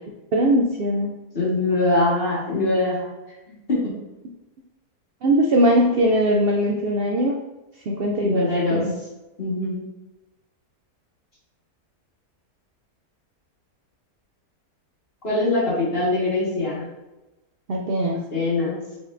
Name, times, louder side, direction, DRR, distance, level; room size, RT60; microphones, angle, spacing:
voice 1, 0.3-1.1 5.2-7.4 7.9-8.9 17.7-18.2, equal, 90° right, -1 dB, 0.5 m, -20 dB
voice 2, 1.3-3.1 3.5-3.8 8.2-8.8 9.4-9.8 15.2-16.8 18.1-18.8, left 2 dB, 40° left, -7 dB, 1.9 m, -23 dB
4.8 x 4.2 x 2.6 m, 1.0 s
omnidirectional pair, 1.6 m